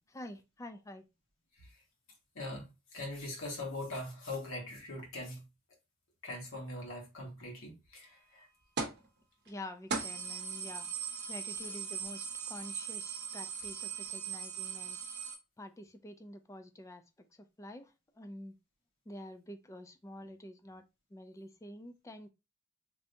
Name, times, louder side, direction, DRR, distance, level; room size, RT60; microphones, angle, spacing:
voice 1, 0.1-1.0 9.5-10.9 11.3-15.0 15.6-17.0 17.3-18.5 19.1-20.8 21.1-22.3, left 1 dB, 15° left, 0.3 m, -48 dB
voice 2, 2.3-5.4 6.2-8.5, left 2 dB, 60° left, 1.2 m, -42 dB
sound 1, 8.8-9.1 9.5-9.6 9.9-15.3, right 5 dB, 50° right, 0.8 m, -39 dB
3.3 x 2.7 x 2.6 m
head